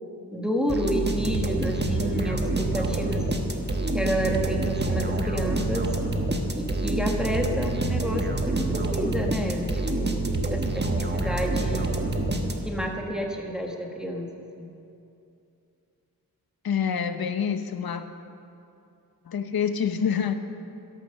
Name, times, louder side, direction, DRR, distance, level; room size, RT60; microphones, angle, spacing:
voice 1, 0.3-3.3 3.9-5.9 6.5-11.9 12.6-14.8, equal, ahead, 1 dB, 1.4 m, -30 dB
sound 1, 0.7-12.9, right 2 dB, 30° right, 1.3 m, -27 dB
voice 2, 16.6-18.1 19.3-20.3, left 7 dB, 75° left, 8 dB, 0.9 m, -26 dB
13.0 x 11.5 x 6.6 m, 2.7 s
wide cardioid pair, 80°, 36 cm